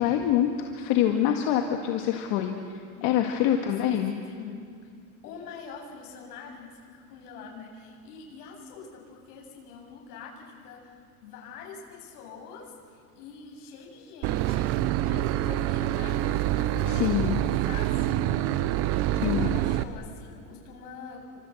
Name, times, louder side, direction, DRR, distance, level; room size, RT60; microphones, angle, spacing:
voice 1, 0.0-4.1 16.9-17.4 19.2-19.5, left 10 dB, 50° left, 3 dB, 2.0 m, -25 dB
voice 2, 2.9-3.6 3.9-4.0 4.3-4.6 5.2-14.7 15.1-17.0 17.3-21.4, left 5 dB, 80° left, 0 dB, 7.5 m, -45 dB
Boat Water vehicle / Engine, 14.2-19.8, right 13 dB, 30° right, 0.7 m, -26 dB
28.5 x 26.0 x 8.0 m, 2.2 s
supercardioid pair, 165°, 45 cm